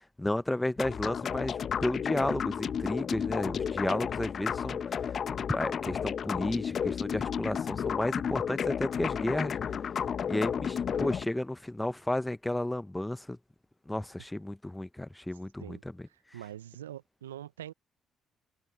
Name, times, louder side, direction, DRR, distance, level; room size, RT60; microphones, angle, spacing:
voice 1, 0.2-4.8 5.5-9.5 10.3-13.4 13.9-16.1, left 1 dB, 10° left, 0.9 m, -32 dB
sound 1, 0.8-11.3, left 7 dB, 50° left, 1.1 m, -32 dB
voice 2, 16.1-17.7, right 11 dB, 90° right, 0.7 m, -44 dB
hypercardioid pair, 45°, 0 cm